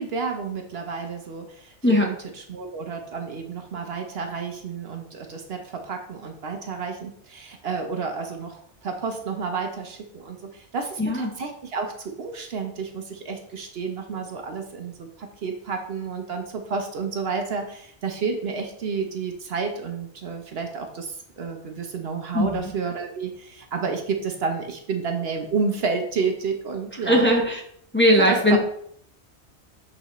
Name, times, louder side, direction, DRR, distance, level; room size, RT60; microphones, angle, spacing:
voice 1, 0.0-2.1 2.5-27.3 28.2-28.6, right 5 dB, 60° right, 4 dB, 1.0 m, -30 dB
voice 2, 11.0-11.3 22.3-22.6 27.0-27.6 27.9-28.6, equal, 10° left, -1 dB, 0.9 m, -19 dB
7.8 x 4.1 x 3.0 m, 0.67 s
omnidirectional pair, 1.2 m